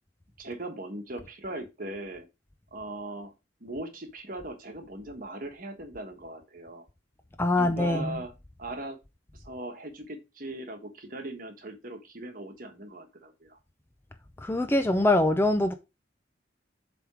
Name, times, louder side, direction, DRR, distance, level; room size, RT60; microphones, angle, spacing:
voice 1, 0.4-2.3 2.7-3.3 3.6-6.9 7.5-8.3 8.6-9.0 9.3-13.6, right 1 dB, 45° right, 1.3 m, -39 dB
voice 2, 7.4-8.2 14.4-15.7, left 1 dB, 10° left, 0.4 m, -24 dB
7.8 x 3.6 x 4.8 m
head